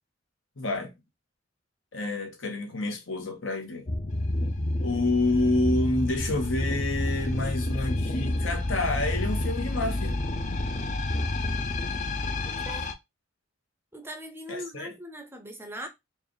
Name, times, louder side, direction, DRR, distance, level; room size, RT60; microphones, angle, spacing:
voice 1, 0.6-0.9 1.9-3.9 4.8-10.2 14.5-14.9, left 2 dB, 75° left, 1.1 m, -28 dB
sound 1, 3.9-12.9, left 2 dB, 40° left, 0.6 m, -29 dB
voice 2, 12.4-12.9 13.9-15.9, equal, 10° right, 0.6 m, -40 dB
4.6 x 2.4 x 3.1 m
head